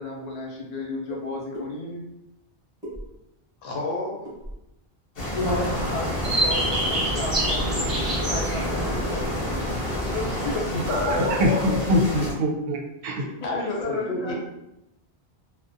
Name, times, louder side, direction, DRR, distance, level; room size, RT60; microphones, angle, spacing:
voice 1, 0.0-2.0 5.3-10.8 11.1-11.3 13.4-14.3, left 2 dB, 45° left, -3 dB, 0.6 m, -33 dB
sound 1, 1.1-1.2 1.5-1.7 2.8-3.4 4.2-4.7 6.2-6.4 6.7-6.8 7.0-7.4 7.7-8.1, equal, 5° right, 0.8 m, -39 dB
voice 2, 3.6-4.1 10.9-11.9 13.4-14.3, left 3 dB, 80° left, -1 dB, 0.9 m, -29 dB
sound 2, 5.2-12.3, left 1 dB, 65° left, 1.1 m, -30 dB
sound 3, 5.4-10.6, right 1 dB, 35° right, 0.8 m, -27 dB
voice 3, 10.9-13.2, equal, 70° right, 0 dB, 0.7 m, -24 dB
2.4 x 2.1 x 2.5 m, 0.88 s
omnidirectional pair, 1.1 m